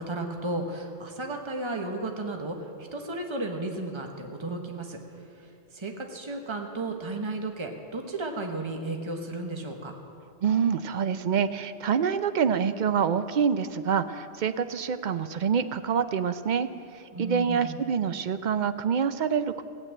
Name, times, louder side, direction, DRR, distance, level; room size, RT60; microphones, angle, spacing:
voice 1, 0.0-2.6 2.9-5.0 5.7-9.9 17.1-17.8, right 2 dB, 25° right, 3 dB, 1.2 m, -33 dB
voice 2, 10.4-16.7 16.9-19.6, right 7 dB, 55° right, 11 dB, 0.5 m, -26 dB
16.0 x 8.1 x 8.8 m, 2.5 s
omnidirectional pair, 1.2 m